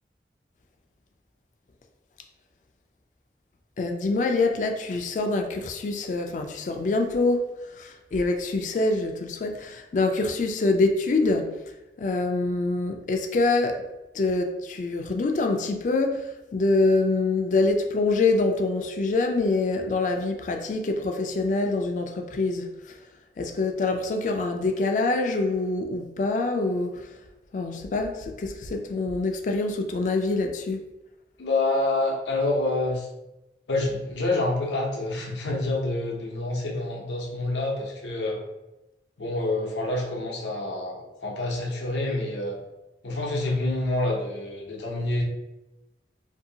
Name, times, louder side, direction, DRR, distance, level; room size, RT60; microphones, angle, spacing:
voice 1, 3.8-7.5 7.8-11.5 12.0-13.8 14.1-23.0 23.4-27.1 27.5-30.9, left 3 dB, 45° left, 4 dB, 0.3 m, -25 dB
voice 2, 31.4-33.1 33.7-38.4 39.2-42.6 43.0-45.2, left 2 dB, 90° left, -1 dB, 0.7 m, -27 dB
2.7 x 2.6 x 2.7 m, 0.99 s
head